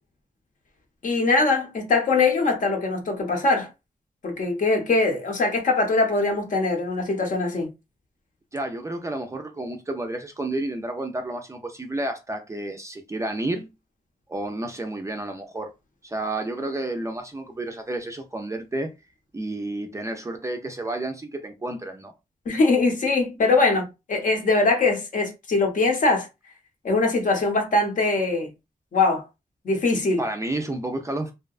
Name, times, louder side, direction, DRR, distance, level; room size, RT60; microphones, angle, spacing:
voice 1, 1.0-3.7 4.2-7.7 22.5-26.3 26.8-28.5 28.9-29.2 29.6-30.2, left 3 dB, 60° left, 0.7 m, -22 dB
voice 2, 8.5-13.7 14.3-15.7 16.0-18.9 19.3-22.1 30.2-31.3, right 2 dB, 20° right, 0.3 m, -31 dB
2.7 x 2.2 x 2.3 m
wide cardioid pair, 165°, 15 cm